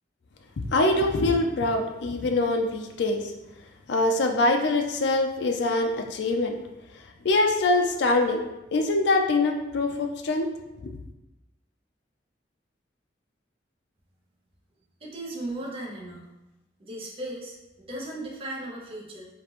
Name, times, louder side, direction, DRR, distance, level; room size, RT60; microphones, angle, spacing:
voice 1, 0.7-3.3 3.9-6.6 7.2-8.4 8.7-10.5 10.8-11.0, left 2 dB, 70° left, 4 dB, 0.4 m, -24 dB
voice 2, 15.0-16.2 16.8-19.3, right 1 dB, 30° right, -4 dB, 0.8 m, -36 dB
5.2 x 2.5 x 3.0 m, 0.98 s
head